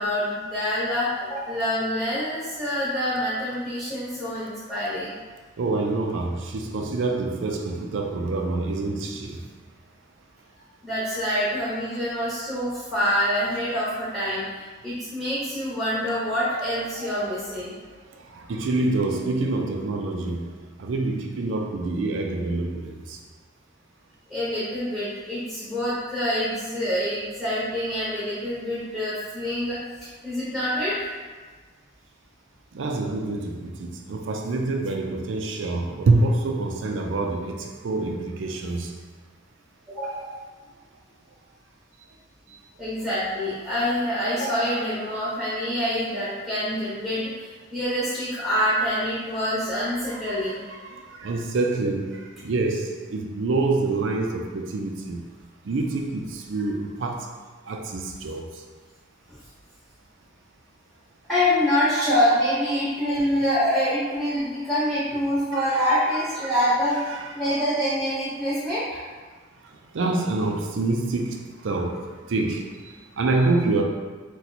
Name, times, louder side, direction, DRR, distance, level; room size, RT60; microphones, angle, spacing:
voice 1, 0.0-5.2 10.8-17.7 24.3-31.2 39.9-40.3 42.8-50.6 61.3-67.0 67.3-69.0, equal, ahead, 0.9 m, -26 dB
voice 2, 5.6-9.4 18.3-23.2 32.7-39.0 50.8-55.2 55.6-57.3 57.7-58.5 65.5-65.6 66.4-66.5 67.1-67.3 69.9-73.8, right 2 dB, 70° right, 0.4 m, -26 dB
2.8 x 2.2 x 4.0 m
head